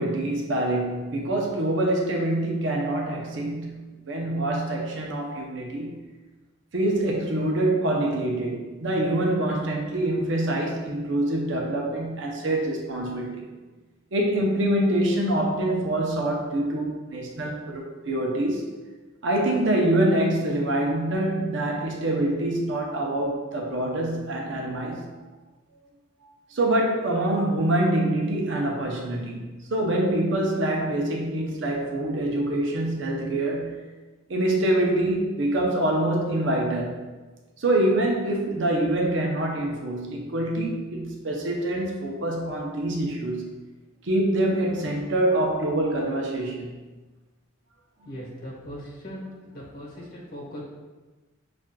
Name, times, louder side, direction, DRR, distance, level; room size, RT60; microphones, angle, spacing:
voice 1, 0.0-6.1 6.7-13.5 14.1-18.6 19.2-25.2 26.5-29.4 29.7-33.8 34.3-37.0 37.6-43.6 44.0-46.7 48.0-48.1, right 1 dB, 60° right, 0 dB, 0.6 m, -25 dB
voice 2, 48.0-50.6, equal, 50° left, -6 dB, 1.0 m, -39 dB
5.9 x 2.5 x 2.2 m, 1.2 s
head